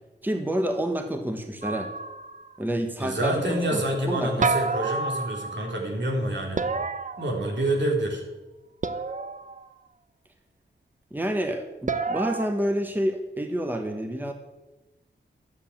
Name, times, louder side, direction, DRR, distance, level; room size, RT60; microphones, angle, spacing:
voice 1, 0.2-1.9 2.6-4.5 11.1-14.3, right 1 dB, 10° right, 6 dB, 1.2 m, -28 dB
sound 1, 1.6-2.5 4.4-5.8 6.6-7.8 8.8-9.7 11.9-12.5, right 4 dB, 40° right, 0.8 m, -29 dB
voice 2, 3.0-6.7 7.2-8.2, right 1 dB, 70° right, 1 dB, 3.6 m, -27 dB
12.5 x 8.3 x 8.9 m, 1.1 s
wide cardioid pair, 125°, 19 cm